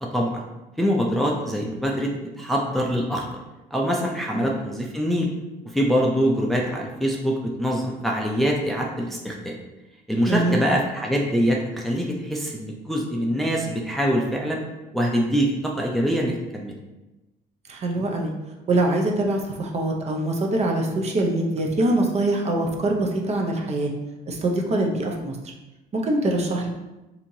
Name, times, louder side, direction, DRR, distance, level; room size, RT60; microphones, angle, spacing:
voice 1, 0.0-0.4 0.8-3.3 3.7-5.3 5.7-9.6 10.1-14.6 14.9-16.8, equal, ahead, -1 dB, 0.5 m, -24 dB
voice 2, 10.2-10.6 17.7-18.3 18.7-23.9 24.3-25.4 25.9-26.7, right 2 dB, 40° right, 1 dB, 0.6 m, -23 dB
4.3 x 2.8 x 2.7 m, 1.0 s
cardioid pair, 110°, 17 cm